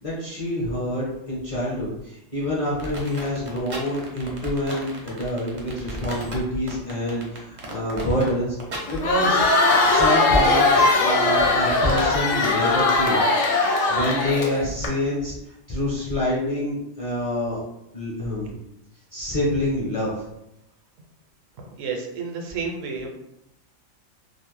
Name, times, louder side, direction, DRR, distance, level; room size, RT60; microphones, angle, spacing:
voice 1, 0.0-8.5 8.9-9.4 9.9-13.2 13.9-15.3 15.7-17.6 17.9-18.6 19.1-20.1, left 1 dB, 35° left, -7 dB, 0.6 m, -26 dB
sound 1, 2.8-12.8, right 2 dB, 50° right, 0.6 m, -37 dB
Crowd, 8.9-14.9, left 3 dB, 70° left, 0.9 m, -20 dB
voice 2, 21.8-23.1, right 5 dB, 80° right, 1 dB, 0.9 m, -30 dB
2.4 x 2.0 x 3.0 m, 0.81 s
omnidirectional pair, 1.3 m